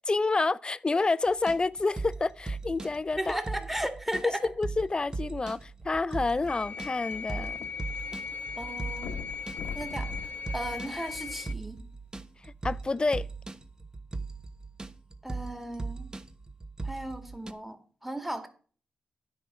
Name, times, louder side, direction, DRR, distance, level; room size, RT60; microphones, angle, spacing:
voice 1, 0.1-3.4 4.6-7.6 12.4-13.3, left 3 dB, 30° left, 0.5 m, -28 dB
sound 1, 1.3-17.5, right 3 dB, 25° right, 1.1 m, -39 dB
voice 2, 3.2-4.4 8.6-9.2 9.7-10.1 10.5-11.8 15.2-16.1 16.8-18.5, right 1 dB, 5° right, 2.1 m, -35 dB
sound 2, 6.5-11.5, left 5 dB, 55° left, 0.9 m, -38 dB
sound 3, 6.7-8.2 8.5-8.6 9.0-11.5 12.2-12.3, left 5 dB, 85° left, 1.1 m, -42 dB
9.7 x 4.9 x 6.9 m
cardioid pair, 60°, 3 cm